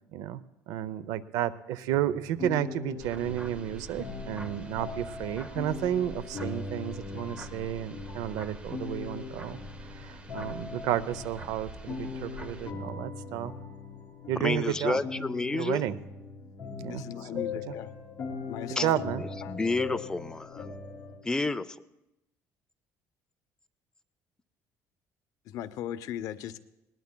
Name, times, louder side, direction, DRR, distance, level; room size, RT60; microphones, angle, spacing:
voice 1, 0.7-9.6 10.0-13.5 14.3-15.0 15.5-16.0 16.8-17.0 17.3-17.7 18.8-19.2, right 12 dB, 85° right, 0.5 m, -32 dB
sound 1, 1.9-21.2, left 4 dB, 35° left, 3.2 m, -40 dB
sound 2, 3.0-12.7, right 2 dB, 20° right, 0.9 m, -46 dB
voice 2, 14.4-15.8 18.8-18.9 19.2-20.7 21.2-21.8, left 3 dB, 10° left, 0.4 m, -30 dB
voice 3, 16.8-17.9 18.5-19.0 19.4-19.5 25.5-26.6, left 11 dB, 65° left, 0.6 m, -38 dB
20.0 x 19.5 x 2.2 m
cardioid pair, 150°, 6 cm